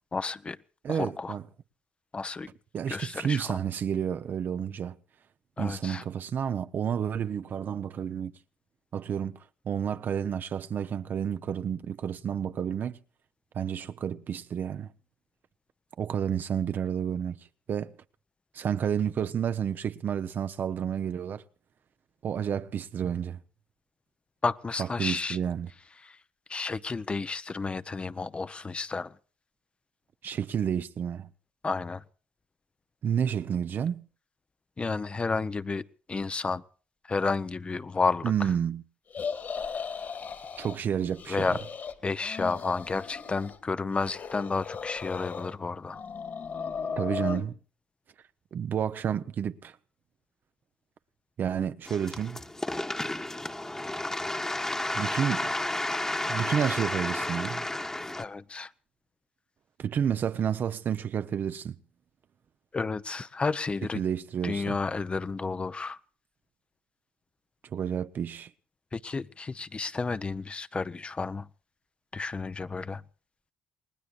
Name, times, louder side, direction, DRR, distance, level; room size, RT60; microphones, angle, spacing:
voice 1, 0.1-0.6 0.9-1.4 2.1-2.5 2.9-3.5 5.6-6.0 24.4-25.4 26.0-26.2 26.5-29.1 31.6-32.0 34.8-35.8 36.1-36.6 37.1-38.3 41.3-41.6 42.0-46.0 58.2-58.7 62.7-64.0 64.4-66.0 68.9-71.5 72.1-73.0, left 4 dB, 30° left, 0.7 m, -31 dB
voice 2, 0.8-1.4 2.7-5.0 5.6-8.3 8.9-9.4 9.6-13.0 13.5-14.9 16.0-17.4 17.7-17.9 18.5-21.4 22.2-23.4 24.8-25.7 30.2-31.3 33.0-34.0 38.2-38.8 40.6-41.6 47.0-47.6 48.5-49.7 51.4-52.4 54.9-55.5 56.2-57.7 59.8-61.7 63.9-64.8 67.7-68.5, right 8 dB, 55° right, 0.8 m, -30 dB
sound 1, 39.1-40.8 41.1-41.9 42.2-43.6 43.9-45.5 45.9-47.4, left 6 dB, 50° left, 2.3 m, -36 dB
sound 2, 51.9-58.2, left 1 dB, 15° left, 1.3 m, -32 dB
29.0 x 19.5 x 2.5 m
supercardioid pair, 75°, 4 cm